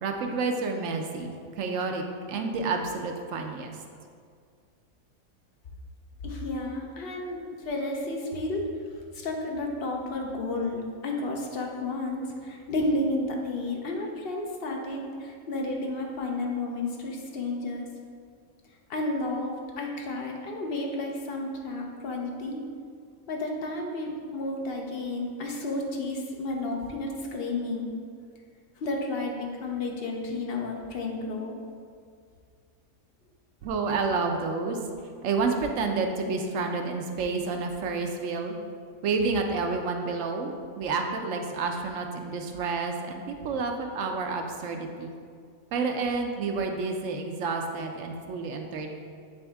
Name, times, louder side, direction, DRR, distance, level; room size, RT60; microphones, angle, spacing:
voice 1, 0.0-3.8 33.6-34.8 35.2-38.5 39.0-45.1 45.7-48.9, right 4 dB, 70° right, 3 dB, 0.9 m, -29 dB
voice 2, 6.2-17.9 18.9-22.6 23.3-27.9 28.8-31.5, left 2 dB, 50° left, 1 dB, 0.8 m, -32 dB
8.4 x 3.5 x 3.4 m, 2.2 s
omnidirectional pair, 1.5 m